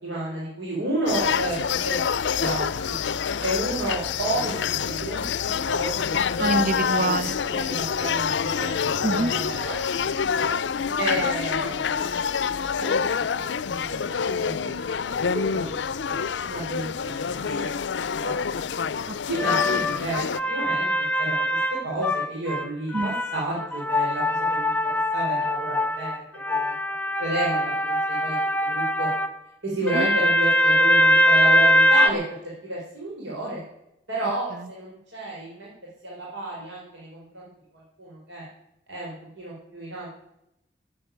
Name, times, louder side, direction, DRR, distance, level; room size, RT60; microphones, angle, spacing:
voice 1, 0.0-2.0 2.3-3.0 3.4-4.5 4.8-6.6 7.5-8.7 9.0-10.2 11.0-12.0 12.7-13.1 13.4-14.7 15.2-15.7 16.0-16.2 16.5-17.7 18.2-18.3 19.3-20.2 20.5-20.9 21.2-21.6 21.8-26.7 27.2-29.1 29.6-32.2 32.6-33.6 34.1-35.7 36.0-37.5 38.0-38.4 38.9-40.1, right 1 dB, 90° right, -5 dB, 4.5 m, -31 dB
sound 1, 1.1-20.4, left 6 dB, 80° left, 0.5 m, -27 dB
voice 2, 6.4-7.4 7.8-7.9 9.0-9.3 19.1-19.2 22.9-23.1 29.8-30.1 34.5-34.7, right 3 dB, 45° right, 18 dB, 0.5 m, -26 dB
sound 2, 19.4-22.7 22.9-29.3 29.9-32.1, equal, 10° left, 0.7 m, -22 dB
12.5 x 8.7 x 9.2 m, 0.82 s
head